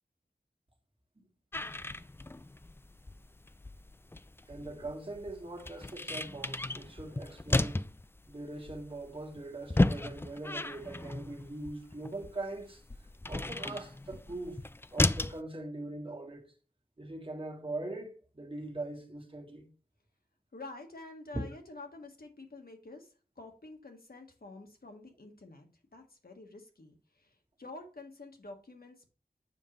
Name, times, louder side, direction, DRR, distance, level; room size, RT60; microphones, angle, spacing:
sound 1, 1.5-15.4, left 2 dB, 15° left, 0.3 m, -34 dB
voice 1, 4.5-7.8 8.3-12.8 13.3-14.6 14.9-16.5 17.0-19.7 21.3-21.5, right 2 dB, 30° right, 1.6 m, -41 dB
voice 2, 20.5-25.7 25.9-29.1, left 2 dB, 65° left, 1.4 m, -49 dB
7.3 x 5.3 x 3.1 m
wide cardioid pair, 50°, 17 cm